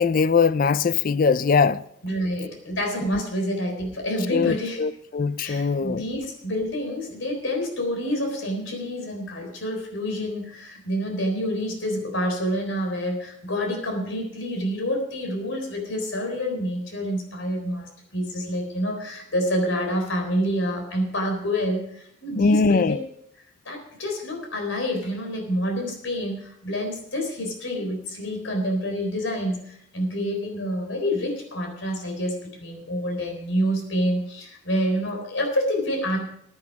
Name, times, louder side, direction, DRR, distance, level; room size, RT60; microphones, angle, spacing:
voice 1, 0.0-1.8 3.1-3.2 4.3-6.0 22.4-23.0, left 5 dB, 45° left, 0.4 m, -21 dB
voice 2, 2.0-4.8 5.4-22.9 23.7-36.2, equal, 80° left, 4.0 m, -28 dB
15.0 x 9.7 x 4.8 m
head